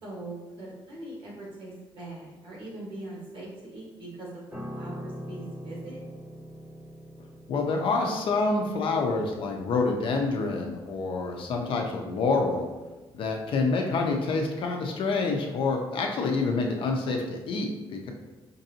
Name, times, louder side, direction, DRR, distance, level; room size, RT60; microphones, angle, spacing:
voice 1, 0.0-4.4 4.7-6.0, right 2 dB, 60° right, -4 dB, 1.5 m, -41 dB
Piano, 4.5-13.9 14.2-14.4, equal, 5° right, 1.1 m, -44 dB
voice 2, 7.5-12.7 13.1-18.1, left 3 dB, 65° left, 2 dB, 0.6 m, -27 dB
5.2 x 2.6 x 2.8 m, 1.2 s
wide cardioid pair, 165°, 10 cm